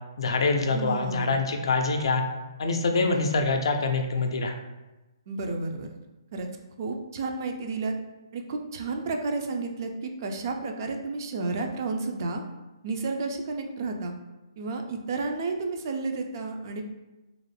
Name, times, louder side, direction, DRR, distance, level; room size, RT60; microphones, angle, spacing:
voice 1, 0.2-2.2 2.6-4.5, left 3 dB, 70° left, 5 dB, 0.4 m, -25 dB
voice 2, 0.7-1.4 5.3-5.9 6.3-6.5 6.8-7.9 8.3-12.4 12.8-14.1 14.6-16.8, right 3 dB, 45° right, 4 dB, 0.3 m, -31 dB
2.4 x 2.1 x 3.2 m, 1.1 s
hypercardioid pair, 155°, 3 cm